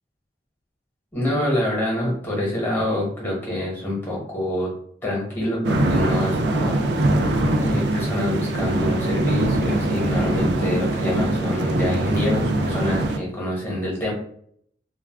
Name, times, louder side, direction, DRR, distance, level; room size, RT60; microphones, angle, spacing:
voice 1, 1.1-4.7 5.0-7.2 7.6-14.1, left 1 dB, 10° left, -4 dB, 1.0 m, -26 dB
sound 1, 5.6-13.2, right 1 dB, 75° right, 0.4 m, -22 dB
2.4 x 2.2 x 3.4 m, 0.64 s
head